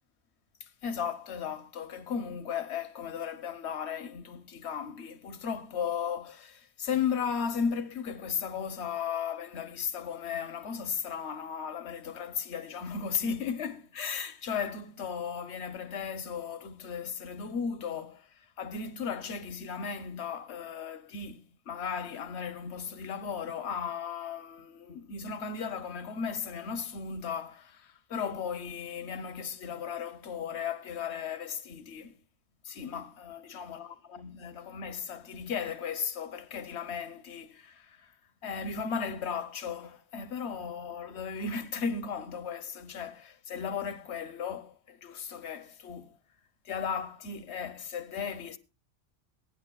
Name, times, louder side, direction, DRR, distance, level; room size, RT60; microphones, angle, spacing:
voice 1, 0.6-32.2 32.6-38.1 38.4-46.2 46.6-48.6, left 6 dB, 80° left, 1.1 m, -36 dB
22.0 x 9.4 x 2.3 m
omnidirectional pair, 1.1 m